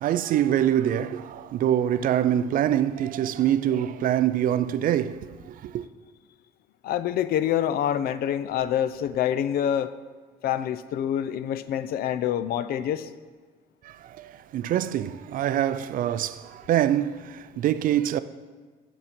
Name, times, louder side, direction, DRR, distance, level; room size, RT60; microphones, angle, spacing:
voice 1, 0.0-5.8 13.8-18.2, right 11 dB, 55° right, 0.4 m, -25 dB
voice 2, 6.8-9.9 10.4-13.1, left 10 dB, 65° left, 0.4 m, -26 dB
7.1 x 6.8 x 5.8 m
cardioid pair, 110°, 17 cm